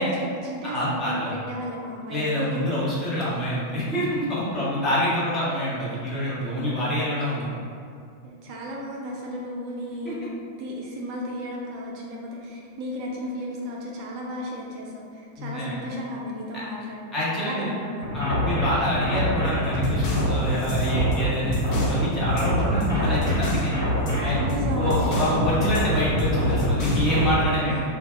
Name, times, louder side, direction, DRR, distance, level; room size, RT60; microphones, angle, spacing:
voice 1, 0.0-2.8 4.5-5.0 6.5-6.9 8.2-10.2 10.6-18.2 24.1-25.1 27.4-27.8, equal, 40° right, -2 dB, 0.4 m, -34 dB
voice 2, 0.6-1.3 2.1-7.5 15.4-15.7 17.1-17.7 18.1-23.7 24.2-24.4 24.7-28.0, equal, 20° left, -8 dB, 1.0 m, -26 dB
sound 1, 18.0-27.3, equal, 80° left, 1.2 m, -25 dB
sound 2, 19.5-22.0 22.4-23.7 24.1-25.4 25.7-27.2, left 1 dB, 40° left, 0.5 m, -31 dB
2.5 x 2.2 x 3.5 m, 2.4 s
figure-of-eight pair, 90°, 0 cm